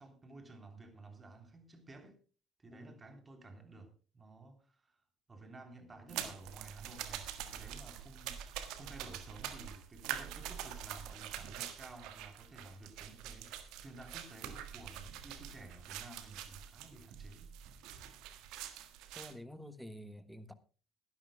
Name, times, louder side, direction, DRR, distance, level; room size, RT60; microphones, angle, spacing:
voice 1, 0.0-2.2 2.6-5.0 5.3-17.5, right 2 dB, 25° right, 3.3 m, -53 dB
sound 1, 6.1-19.3, right 10 dB, 60° right, 1.4 m, -45 dB
voice 2, 19.1-20.5, equal, ahead, 1.5 m, -49 dB
21.0 x 12.0 x 2.2 m
figure-of-eight pair, 55°, 0 cm